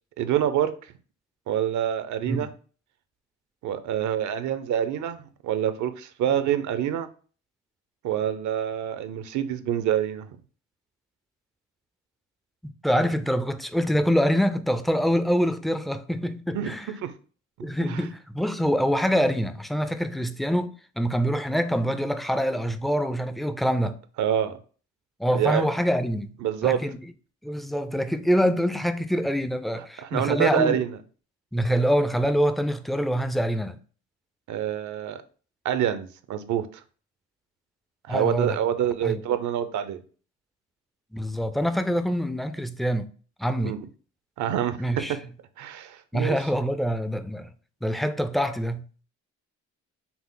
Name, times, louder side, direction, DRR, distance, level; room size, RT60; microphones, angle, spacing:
voice 1, 0.2-0.7 1.5-2.5 3.6-7.1 8.0-10.3 16.5-17.1 17.8-18.0 24.2-24.6 25.3-25.6 26.4-26.8 29.7-31.0 34.5-35.2 35.6-36.8 38.1-40.0 43.6-43.8 44.4-45.1 45.6-46.4, right 10 dB, 75° right, 0.6 m, -26 dB
voice 2, 12.6-16.9 17.6-24.0 25.2-26.3 26.6-27.0 27.4-30.8 31.5-33.8 38.1-38.6 39.0-39.2 41.1-43.1 43.4-43.8 44.8-45.2 46.1-47.5 47.8-49.0, equal, ahead, 0.3 m, -25 dB
5.8 x 2.0 x 3.7 m
cardioid pair, 90°, 30 cm